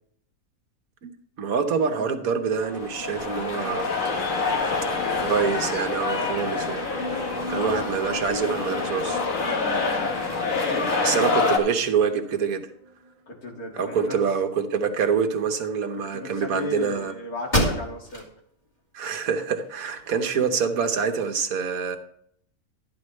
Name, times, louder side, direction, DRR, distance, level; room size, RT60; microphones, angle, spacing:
voice 1, 1.4-4.0 5.2-6.8 7.5-9.2 11.0-12.7 13.8-17.1 18.9-22.0, right 6 dB, 70° right, 6 dB, 1.4 m, -26 dB
sound 1, 2.6-11.6, left 4 dB, 60° left, 1.7 m, -26 dB
voice 2, 4.6-6.5 10.0-11.0 13.3-14.2 15.9-18.3, left 2 dB, 80° left, -1 dB, 2.6 m, -37 dB
sound 2, 6.5-13.5, left 1 dB, 35° right, 0.6 m, -40 dB
sound 3, 16.9-17.0 17.5-18.3 18.8-18.9 19.4-20.3, equal, 30° left, 2.7 m, -27 dB
13.0 x 9.8 x 3.2 m, 0.67 s
omnidirectional pair, 1.6 m